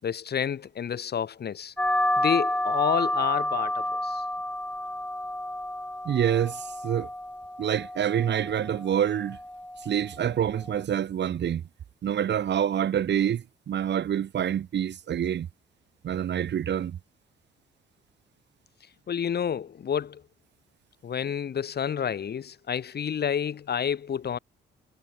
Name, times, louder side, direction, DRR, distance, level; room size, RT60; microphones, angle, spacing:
voice 1, 0.0-1.7 2.2-4.2 19.1-20.2 21.0-24.4, left 8 dB, 55° left, 6.9 m, -29 dB
sound 1, 1.8-10.8, left 1 dB, 5° left, 7.6 m, -30 dB
voice 2, 6.0-7.1 7.6-9.4 9.8-11.6 12.0-15.5 16.0-17.0, right 9 dB, 60° right, 3.1 m, -27 dB
cardioid pair, 90°, 20 cm